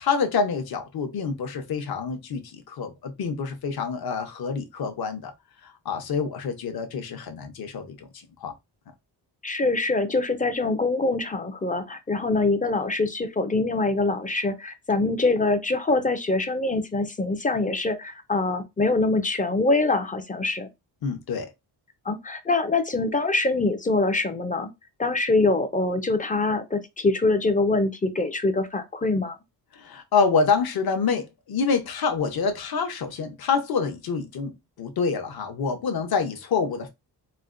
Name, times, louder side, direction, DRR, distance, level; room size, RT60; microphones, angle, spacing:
voice 1, 0.0-5.3 5.6-8.1 8.4-8.5 21.0-21.5 29.7-36.9, left 5 dB, 60° left, 0.8 m, -27 dB
voice 2, 9.4-20.7 22.1-24.7 25.0-29.4, left 3 dB, 20° left, 0.4 m, -24 dB
4.2 x 2.1 x 2.4 m
wide cardioid pair, 130°, 42 cm